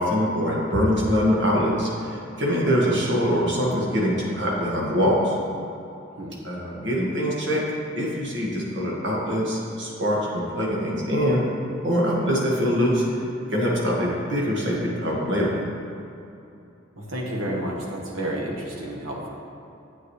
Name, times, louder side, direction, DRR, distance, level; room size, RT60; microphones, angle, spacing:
voice 1, 0.0-1.9 2.4-5.4 6.4-7.6 8.0-11.5 11.8-13.0 13.5-15.5, equal, 65° right, -4 dB, 1.8 m, -23 dB
voice 2, 17.0-19.3, right 1 dB, 85° right, -2 dB, 1.4 m, -30 dB
8.3 x 8.3 x 3.2 m, 2.7 s
head